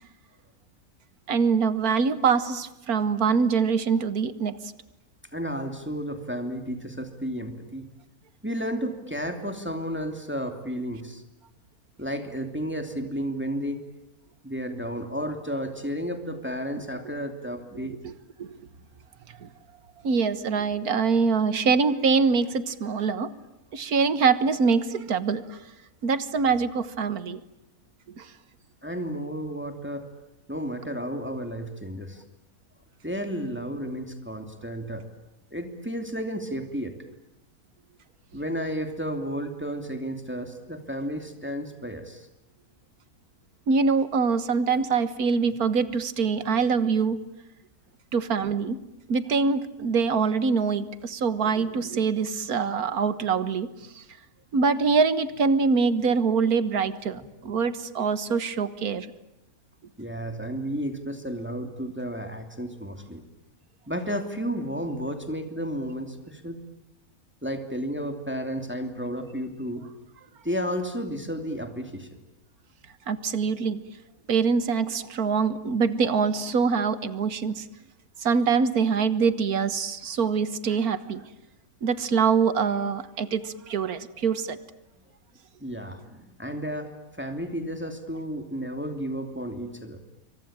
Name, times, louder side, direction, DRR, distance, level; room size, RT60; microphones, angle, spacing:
voice 1, 1.3-4.6 17.8-18.1 18.4-18.5 19.4-19.5 20.0-23.3 23.7-25.6 26.0-27.4 28.2-28.3 43.7-47.2 48.1-48.8 49.1-53.7 54.0-54.1 54.5-59.1 73.1-73.8 74.3-77.6 78.2-81.2 81.8-84.6, right 5 dB, 90° right, 14 dB, 1.8 m, -24 dB
voice 2, 5.3-7.9 8.4-11.2 12.0-13.8 14.4-18.0 28.8-30.1 30.5-32.2 33.0-35.1 35.5-36.9 38.3-42.3 57.2-57.3 60.0-63.2 63.9-66.6 67.4-69.8 70.4-72.2 85.6-90.0, equal, 5° right, 6 dB, 2.8 m, -32 dB
27.0 x 24.5 x 8.9 m, 0.90 s
omnidirectional pair, 1.5 m